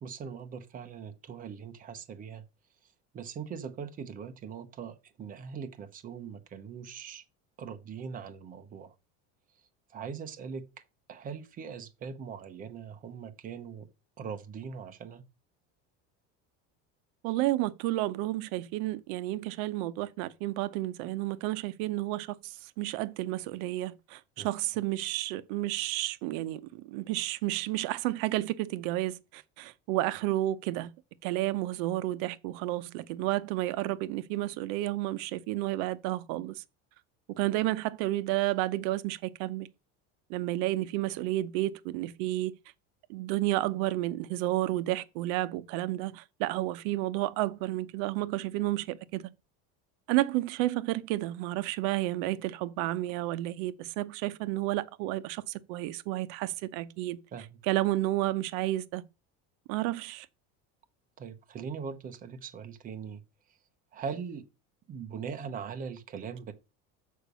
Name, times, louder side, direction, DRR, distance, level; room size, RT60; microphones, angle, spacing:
voice 1, 0.0-2.4 3.1-7.2 7.6-8.9 9.9-10.6 11.1-13.9 14.2-15.2 24.4-24.5 57.3-57.6 61.2-63.2 63.9-64.4 64.9-66.5, right 6 dB, 25° right, 0.8 m, -41 dB
voice 2, 17.2-30.9 31.2-36.6 37.3-39.7 40.3-42.5 43.1-49.3 50.1-57.2 57.6-59.0 59.7-60.3, right 16 dB, 65° right, 0.7 m, -31 dB
6.6 x 5.1 x 6.7 m
cardioid pair, 175°, 33 cm